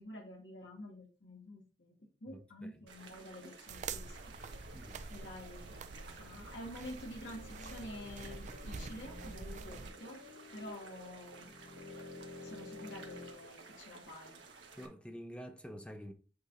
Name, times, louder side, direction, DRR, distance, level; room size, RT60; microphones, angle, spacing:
voice 1, 0.0-4.3 5.1-10.2 10.5-11.5 12.4-14.4, left 1 dB, 85° left, 1.7 m, -49 dB
voice 2, 2.3-2.8 4.7-5.0 14.8-16.1, equal, 5° left, 0.8 m, -48 dB
sound 1, 2.9-14.9, right 3 dB, 90° right, 1.4 m, -55 dB
sound 2, 3.7-9.9, right 4 dB, 40° right, 0.4 m, -46 dB
sound 3, 7.2-13.4, left 3 dB, 60° left, 1.2 m, -51 dB
8.2 x 4.6 x 2.6 m
head